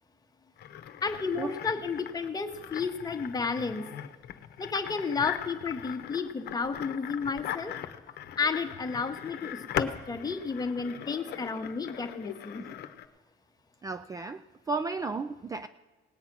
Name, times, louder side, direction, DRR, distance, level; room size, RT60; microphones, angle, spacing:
sound 1, 0.6-13.1, left 10 dB, 65° left, 0.8 m, -39 dB
voice 1, 1.0-3.9 4.6-7.7 8.4-12.6, left 5 dB, 20° left, 7 dB, 1.0 m, -32 dB
voice 2, 13.8-14.4 14.7-15.7, right 3 dB, 20° right, 10 dB, 0.3 m, -33 dB
18.5 x 8.1 x 6.0 m, 1.3 s
cardioid pair, 125°, 18 cm